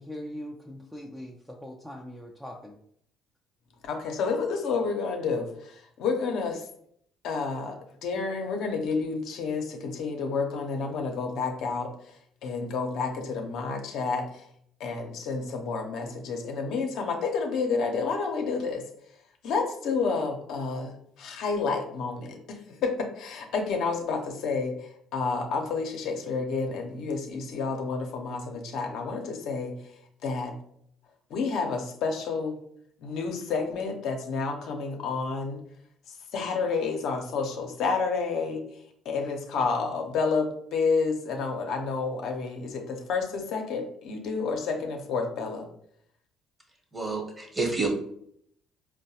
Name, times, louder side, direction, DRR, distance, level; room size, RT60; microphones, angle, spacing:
voice 1, 0.0-2.8, left 1 dB, ahead, -1 dB, 0.5 m, -41 dB
voice 2, 3.8-6.7 7.2-14.5 14.8-18.8 19.4-29.9 30.2-30.5 31.3-32.6 33.0-35.6 36.3-38.6 39.0-45.7, left 4 dB, 70° left, 3 dB, 0.6 m, -30 dB
voice 3, 46.9-47.9, right 3 dB, 20° right, 1 dB, 1.1 m, -29 dB
4.4 x 2.1 x 2.8 m, 0.68 s
supercardioid pair, 70°, 0 cm